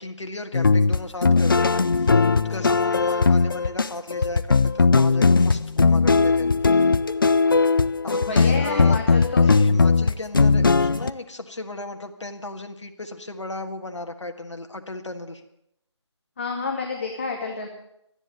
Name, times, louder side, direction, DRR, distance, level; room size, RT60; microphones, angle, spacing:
voice 1, 0.0-6.9 8.0-9.0 9.4-15.4, left 2 dB, 80° left, 5 dB, 1.6 m, -35 dB
sound 1, 0.5-11.1, left 4 dB, 45° left, 0.4 m, -19 dB
voice 2, 8.3-9.6 16.4-17.7, left 4 dB, 25° left, 1 dB, 1.2 m, -29 dB
13.0 x 9.9 x 8.0 m, 0.78 s
figure-of-eight pair, 165°, 15 cm